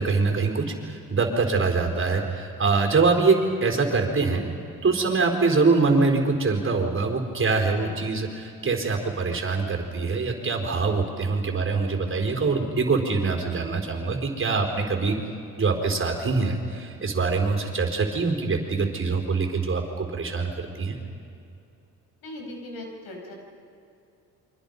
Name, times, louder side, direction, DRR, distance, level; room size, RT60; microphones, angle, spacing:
voice 1, 0.0-4.5 4.8-15.2 15.6-21.0, right 4 dB, 35° right, 2 dB, 4.3 m, -24 dB
voice 2, 22.2-23.3, left 1 dB, 80° left, 2 dB, 5.7 m, -39 dB
29.0 x 24.5 x 5.4 m, 2.7 s
supercardioid pair, 75°, 36 cm